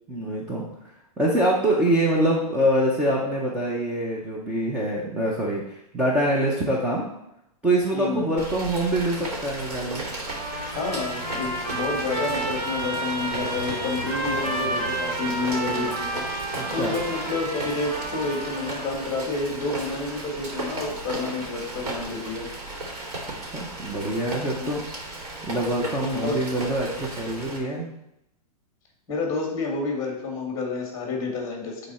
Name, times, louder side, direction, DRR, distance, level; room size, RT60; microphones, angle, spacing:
voice 1, 0.1-0.6 1.2-7.1 7.6-10.0 16.6-17.0 23.4-24.8 25.4-27.9, right 1 dB, 5° right, -3 dB, 0.5 m, -25 dB
voice 2, 7.9-8.2 10.8-22.5 24.6-24.7 26.0-26.4 29.1-31.8, left 3 dB, 15° left, 0 dB, 1.8 m, -29 dB
Rain, 8.4-27.6, right 2 dB, 75° right, 2.8 m, -35 dB
Trumpet, 10.2-19.1, right 2 dB, 40° right, 2.8 m, -31 dB
9.6 x 4.0 x 4.2 m, 0.82 s
supercardioid pair, 170°, 20 cm